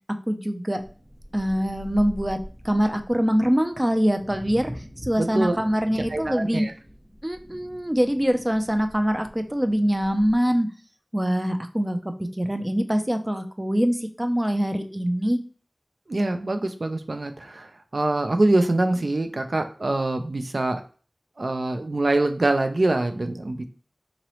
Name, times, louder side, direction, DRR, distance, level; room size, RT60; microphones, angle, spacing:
voice 1, 0.3-0.8 1.3-2.4 2.6-4.7 5.0-6.7 7.2-10.7 11.1-15.4, equal, 20° right, 7 dB, 0.5 m, -24 dB
sound 1, 0.8-10.4, equal, 55° right, 1.6 m, -43 dB
voice 2, 5.2-5.6 6.1-6.7 16.1-20.8 21.4-23.6, right 2 dB, 85° right, 7 dB, 0.4 m, -24 dB
3.9 x 2.9 x 3.0 m, 0.39 s
wide cardioid pair, 50°, 0 cm